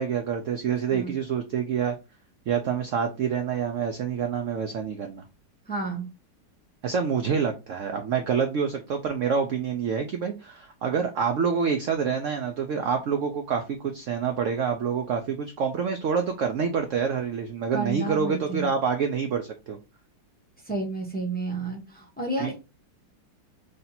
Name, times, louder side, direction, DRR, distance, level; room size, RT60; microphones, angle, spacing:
voice 1, 0.0-1.9 2.5-5.2 6.8-19.8 22.4-22.6, right 6 dB, 75° right, 5 dB, 0.7 m, -27 dB
voice 2, 5.7-6.1 17.7-18.7 20.6-22.6, right 3 dB, 10° left, -1 dB, 0.4 m, -31 dB
3.2 x 2.8 x 3.9 m, 0.28 s
omnidirectional pair, 1.9 m